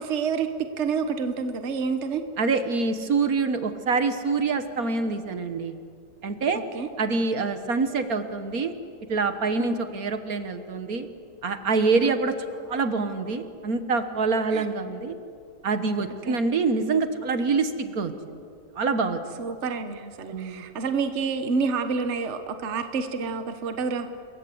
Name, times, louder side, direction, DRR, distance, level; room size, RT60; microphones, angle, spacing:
voice 1, 0.0-2.2 6.5-6.9 9.6-9.8 12.0-12.2 14.5-14.7 16.3-16.4 19.4-24.1, right 5 dB, 45° right, 8 dB, 1.4 m, -28 dB
voice 2, 2.4-5.7 6.2-6.6 7.0-8.7 9.1-11.1 11.4-12.3 12.7-15.2 15.6-18.4 18.8-19.2 20.3-20.6, right 4 dB, 60° right, 9 dB, 1.7 m, -25 dB
26.5 x 22.5 x 7.9 m, 2.4 s
omnidirectional pair, 1.7 m